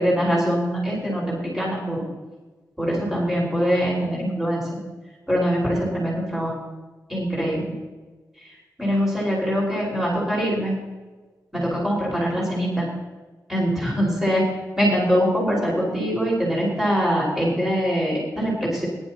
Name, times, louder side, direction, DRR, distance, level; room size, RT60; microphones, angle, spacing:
voice 1, 0.0-2.1 2.8-4.6 5.3-6.5 7.1-7.7 8.8-10.8 11.5-12.9 13.5-14.4 14.8-18.9, equal, 5° right, -6 dB, 5.3 m, -23 dB
22.0 x 12.0 x 3.0 m, 1.3 s
wide cardioid pair, 165°, 7 cm